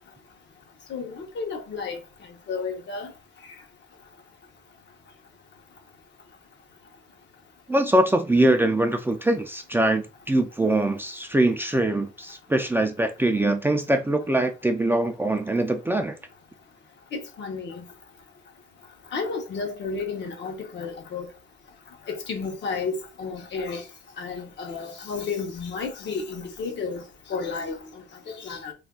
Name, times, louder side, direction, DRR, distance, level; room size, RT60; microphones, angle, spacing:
voice 1, 0.9-2.0 2.5-3.1 17.1-17.8 19.1-21.3 22.1-23.8 24.2-27.0 27.3-27.8 28.3-28.7, left 4 dB, 65° left, 0.9 m, -32 dB
voice 2, 7.7-16.2, right 1 dB, 10° right, 0.4 m, -23 dB
2.5 x 2.2 x 3.5 m
cardioid pair, 90°, 20 cm